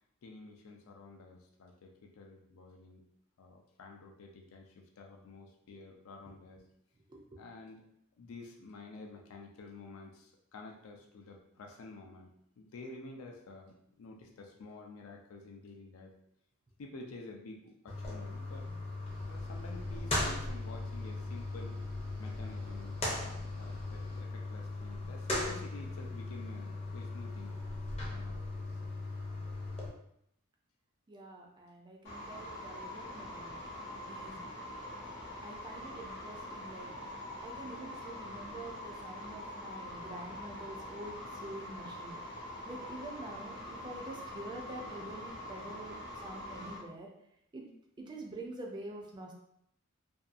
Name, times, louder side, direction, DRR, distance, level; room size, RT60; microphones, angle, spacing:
voice 1, 0.2-3.0 3.4-6.6 7.4-7.8 8.2-16.1 16.8-18.7 19.3-21.8 22.2-27.6 27.9-28.8, left 3 dB, 80° left, 1 dB, 0.4 m, -50 dB
sound 1, 17.9-29.9, left 2 dB, 30° left, 0.5 m, -38 dB
sound 2, 19.1-24.2, left 1 dB, 90° right, 0.8 m, -48 dB
voice 2, 31.1-33.6 34.0-34.4 35.4-36.9 37.4-42.2 42.6-47.1 47.5-47.7 48.0-49.3, right 2 dB, 20° right, 0 dB, 0.4 m, -46 dB
sound 3, 32.0-46.8, left 1 dB, 55° left, 0.9 m, -44 dB
2.6 x 2.2 x 2.4 m, 0.75 s
head